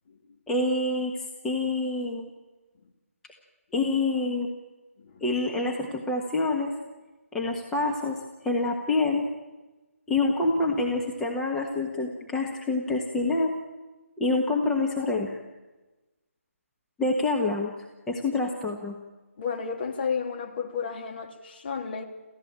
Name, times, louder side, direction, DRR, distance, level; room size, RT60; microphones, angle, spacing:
voice 1, 0.5-1.1 1.4-2.3 3.7-4.5 5.2-6.8 7.3-8.2 8.4-9.3 10.1-13.5 14.2-15.4 17.0-17.7 18.1-19.0, left 2 dB, 5° left, -1 dB, 1.5 m, -26 dB
voice 2, 19.4-22.0, left 6 dB, 40° left, 3 dB, 3.1 m, -32 dB
27.5 x 15.5 x 8.8 m, 1.1 s
figure-of-eight pair, 155°, 8 cm